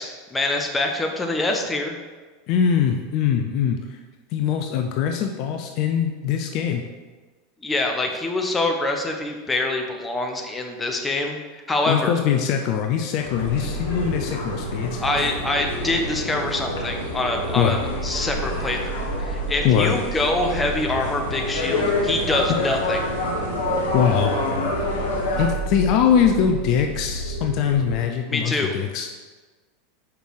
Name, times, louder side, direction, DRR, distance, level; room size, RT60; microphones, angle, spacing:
voice 1, 0.0-1.9 7.6-12.2 15.0-23.0 28.3-28.7, left 2 dB, 15° left, 2 dB, 1.1 m, -25 dB
voice 2, 2.5-4.0 4.3-6.8 11.9-15.0 17.6-17.8 19.6-19.9 23.9-24.3 25.4-29.3, left 8 dB, 55° left, 4 dB, 0.6 m, -22 dB
sound 1, 13.2-25.5, left 2 dB, 75° left, 1.6 m, -29 dB
sound 2, 13.3-28.0, right 3 dB, 90° right, 1.0 m, -31 dB
5.9 x 5.1 x 4.8 m, 1.3 s
hypercardioid pair, 90°, 0 cm